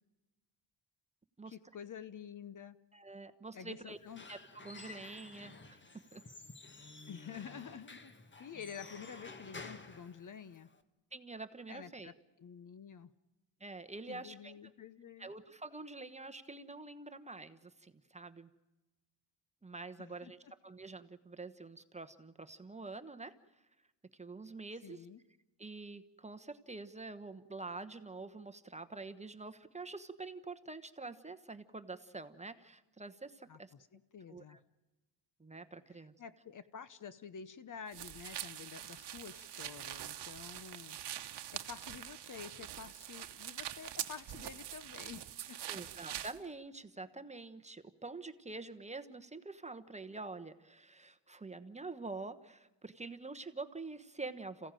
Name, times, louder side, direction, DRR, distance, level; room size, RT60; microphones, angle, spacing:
voice 1, 1.5-2.8 3.5-4.2 7.1-8.1 8.4-10.7 11.7-13.1 14.1-15.3 20.0-20.5 24.8-25.2 33.5-34.6 36.2-41.0 41.5-45.6, left 7 dB, 45° left, 14 dB, 0.9 m, -49 dB
voice 2, 2.9-4.0 4.3-5.8 6.1-6.2 11.1-12.1 13.6-14.7 15.2-18.5 19.6-23.3 24.1-25.0 25.6-33.7 34.3-34.6 35.4-36.1 45.7-54.7, right 3 dB, 15° right, 8 dB, 1.1 m, -46 dB
Squeak / Wood, 3.9-10.8, left 3 dB, 25° left, 1.6 m, -52 dB
sound 1, 37.9-46.4, right 11 dB, 65° right, 1.1 m, -44 dB
27.0 x 16.0 x 9.1 m, 1.1 s
cardioid pair, 100°, 44 cm